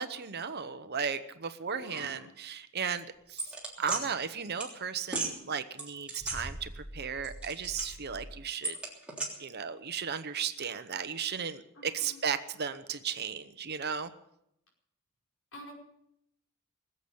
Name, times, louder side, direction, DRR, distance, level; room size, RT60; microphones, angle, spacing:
voice 1, 0.0-8.8 9.4-14.1, right 6 dB, 50° right, 11 dB, 0.9 m, -35 dB
voice 2, 1.7-2.2 11.8-12.1 15.5-15.7, left 1 dB, 60° left, 0 dB, 5.0 m, -47 dB
Elevator Sounds - Button Clicks, 3.4-4.0 4.6-4.7 5.1-5.3 5.8-6.9 7.2-8.1 8.6-9.3, right 3 dB, 5° right, 3.3 m, -36 dB
20.5 x 8.0 x 8.7 m, 0.77 s
head